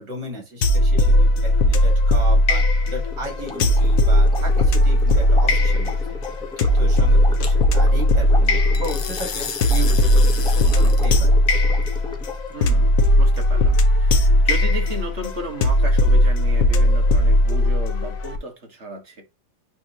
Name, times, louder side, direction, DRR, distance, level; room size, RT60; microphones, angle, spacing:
voice 1, 0.0-6.2 6.6-11.3, right 1 dB, 65° right, 3.2 m, -34 dB
sound 1, 0.6-18.4, left 1 dB, 55° left, 1.2 m, -17 dB
sound 2, 3.1-12.5, left 2 dB, 5° left, 0.8 m, -36 dB
sound 3, 3.5-3.9 7.4-7.5 8.7-11.2, left 7 dB, 80° left, 1.8 m, -33 dB
voice 2, 12.5-19.2, right 1 dB, 40° right, 1.8 m, -34 dB
9.5 x 3.6 x 2.9 m
omnidirectional pair, 2.0 m